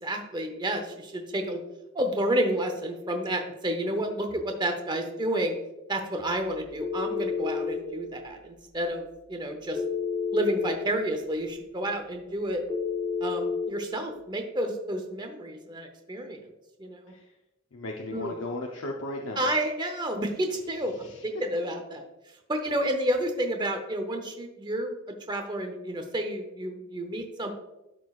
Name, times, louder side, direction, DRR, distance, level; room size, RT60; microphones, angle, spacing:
voice 1, 0.0-1.6 1.9-5.6 5.9-9.8 10.3-12.6 13.2-16.5 16.8-17.1 18.1-18.4 19.4-22.0 22.5-27.5, right 1 dB, 20° right, 5 dB, 0.7 m, -30 dB
Telephone, 6.8-7.8 9.7-10.8 12.7-13.7, left 5 dB, 5° left, 2.2 m, -30 dB
voice 2, 17.7-19.5 21.0-21.2, left 2 dB, 70° left, 0 dB, 0.7 m, -36 dB
12.5 x 4.6 x 2.4 m, 0.96 s
head